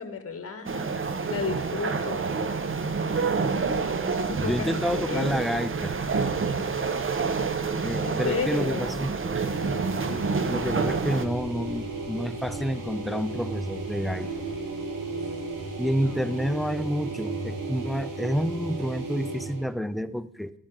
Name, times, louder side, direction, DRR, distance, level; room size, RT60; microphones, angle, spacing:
voice 1, 0.0-2.2 4.3-5.3 8.0-9.0 16.0-16.5, left 5 dB, 45° left, 9 dB, 1.0 m, -33 dB
sound 1, 0.7-11.3, right 4 dB, 40° right, 0.8 m, -28 dB
sound 2, 3.5-16.2, equal, 20° right, 2.6 m, -48 dB
voice 2, 4.4-6.0 7.8-9.1 10.1-10.2 10.5-14.3 15.8-20.5, equal, ahead, 13 dB, 0.4 m, -29 dB
sound 3, 9.2-19.7, right 3 dB, 80° right, 1.7 m, -35 dB
11.5 x 5.0 x 3.7 m, 0.82 s
cardioid pair, 50°, 32 cm